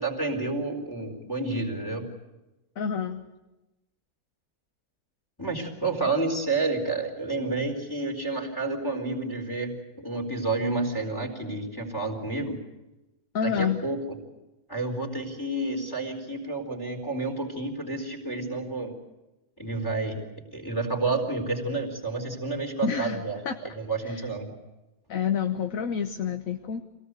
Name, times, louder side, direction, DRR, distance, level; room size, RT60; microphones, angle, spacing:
voice 1, 0.0-2.0 5.4-12.6 13.4-14.0 14.7-18.9 19.6-20.2 20.5-24.6, right 3 dB, 15° left, 3 dB, 4.1 m, -30 dB
voice 2, 2.8-3.2 6.0-6.1 13.3-13.8 22.8-23.5 24.0-24.3 25.1-26.8, left 7 dB, 60° left, 7 dB, 1.4 m, -28 dB
25.5 x 18.0 x 8.2 m, 1.0 s
omnidirectional pair, 1.7 m